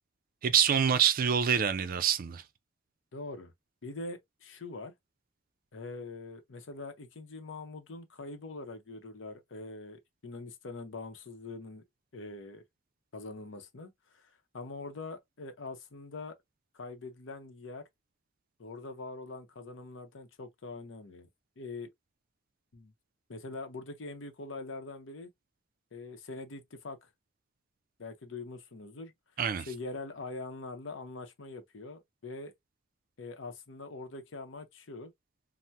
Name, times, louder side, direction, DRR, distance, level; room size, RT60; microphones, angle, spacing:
voice 1, 0.4-2.4 29.4-29.7, right 8 dB, 50° right, 0.4 m, -26 dB
voice 2, 3.1-3.5 3.8-4.9 5.7-11.8 12.1-12.6 13.1-16.4 16.7-17.8 18.6-21.3 21.6-21.9 22.7-22.9 23.3-25.3 25.9-27.1 28.0-29.1 29.7-32.5 33.2-35.1, left 3 dB, 75° left, 0.7 m, -43 dB
3.4 x 2.1 x 2.7 m
head